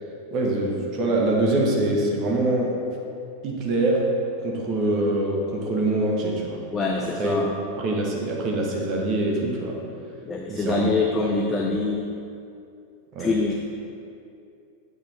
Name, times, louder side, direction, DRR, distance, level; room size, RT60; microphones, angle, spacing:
voice 1, 0.3-2.8 3.4-4.1 4.4-6.6 7.0-7.3 7.8-9.8 10.5-10.9 11.2-11.8 13.1-13.3, right 2 dB, 35° right, -1 dB, 1.4 m, -24 dB
voice 2, 6.7-7.6 10.2-12.0 13.2-13.5, left 3 dB, 20° left, 1 dB, 0.6 m, -25 dB
8.6 x 6.6 x 3.6 m, 2.5 s
figure-of-eight pair, 90°, 0 cm